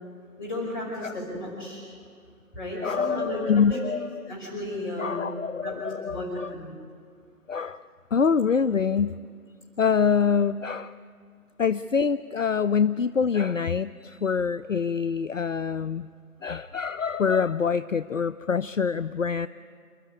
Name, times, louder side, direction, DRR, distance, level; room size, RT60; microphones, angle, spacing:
voice 1, 0.4-1.8 2.5-3.8 4.3-5.3 5.6-6.3 6.5-6.7, left 1 dB, 15° left, -5 dB, 5.4 m, -34 dB
voice 2, 2.8-4.3 5.0-6.5 7.5-7.8 8.1-9.2 9.8-10.9 11.6-16.1 16.4-19.5, left 6 dB, 60° left, 15 dB, 0.5 m, -25 dB
28.5 x 12.0 x 9.8 m, 2.2 s
figure-of-eight pair, 160°, 45 cm